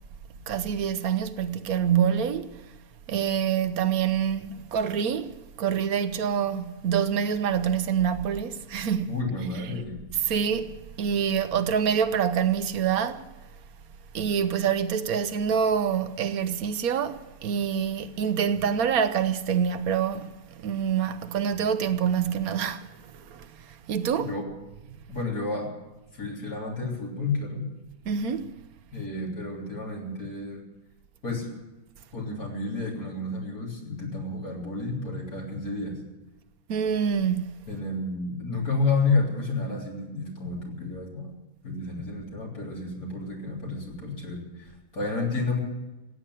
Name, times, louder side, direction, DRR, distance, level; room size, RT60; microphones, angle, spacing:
voice 1, 0.5-2.5 3.1-9.1 10.2-13.2 14.1-20.3 20.6-22.9 23.3-23.5 23.9-24.3 28.1-28.5 36.7-37.6, right 7 dB, 75° right, 1.2 m, -26 dB
voice 2, 9.1-10.0 24.3-24.5 25.1-25.7 26.1-27.6 28.9-30.6 31.2-31.5 32.1-36.0 37.7-41.3 41.6-45.6, left 3 dB, 75° left, 3.9 m, -30 dB
15.5 x 8.9 x 9.8 m
omnidirectional pair, 1.6 m